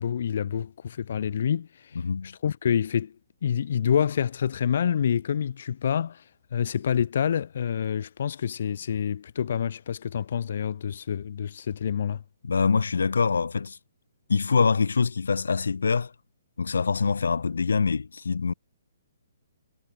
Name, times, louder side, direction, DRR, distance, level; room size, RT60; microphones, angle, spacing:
voice 1, 0.0-3.2 3.4-6.2 6.5-12.2, left 8 dB, 55° left, 2.6 m, -27 dB
voice 2, 2.0-2.3 12.4-13.8 14.3-16.1 16.6-18.5, left 5 dB, 90° left, 2.9 m, -24 dB
hypercardioid pair, 160°, 0 cm